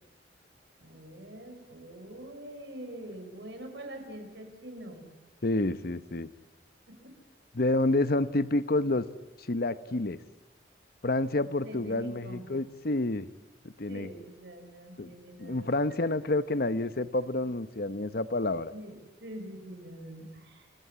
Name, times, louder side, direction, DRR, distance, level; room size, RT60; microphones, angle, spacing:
voice 1, 0.8-5.0 7.0-7.1 11.6-12.5 13.9-15.7 18.7-18.9 19.2-20.7, right 1 dB, 70° right, 5 dB, 6.5 m, -44 dB
voice 2, 5.4-6.3 7.5-9.0 9.5-10.2 11.0-13.3 13.8-14.1 15.0-15.1 15.4-18.7, left 2 dB, 55° left, 13 dB, 0.9 m, -28 dB
30.0 x 23.0 x 8.7 m, 1.1 s
head